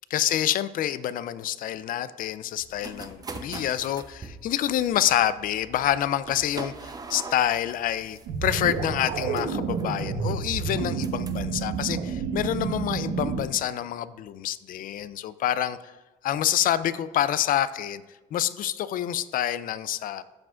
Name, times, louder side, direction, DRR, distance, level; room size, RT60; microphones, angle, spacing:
voice 1, 0.1-15.8 16.2-18.0 18.3-20.2, left 11 dB, 55° left, 15 dB, 0.4 m, -27 dB
sound 1, 2.6-11.5, right 4 dB, 20° right, 0.7 m, -43 dB
sound 2, 8.3-13.4, right 5 dB, 80° right, 1.0 m, -29 dB
13.5 x 4.9 x 2.4 m, 1.1 s
cardioid pair, 110°, 17 cm